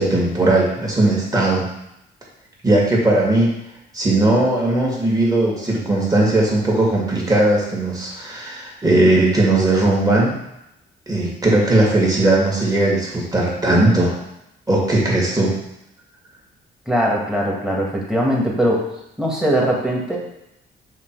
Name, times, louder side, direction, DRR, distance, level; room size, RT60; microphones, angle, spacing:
voice 1, 0.0-1.7 2.6-3.5 3.9-10.4 11.1-14.1 14.7-15.5, right 2 dB, 20° right, -3 dB, 2.1 m, -18 dB
voice 2, 16.9-18.9 19.2-20.2, equal, 5° right, -3 dB, 1.7 m, -20 dB
6.0 x 3.5 x 4.6 m, 0.84 s
cardioid pair, 90°, 20 cm